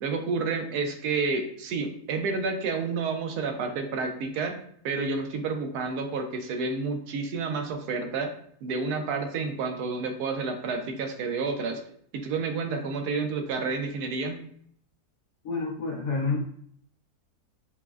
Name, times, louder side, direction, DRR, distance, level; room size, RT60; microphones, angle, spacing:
voice 1, 0.0-4.6 4.8-8.3 8.6-11.8 12.1-14.4, right 4 dB, 80° right, 5 dB, 1.1 m, -30 dB
voice 2, 15.4-16.4, left 4 dB, 85° left, -5 dB, 1.6 m, -28 dB
5.6 x 2.1 x 2.4 m, 0.62 s
omnidirectional pair, 1.6 m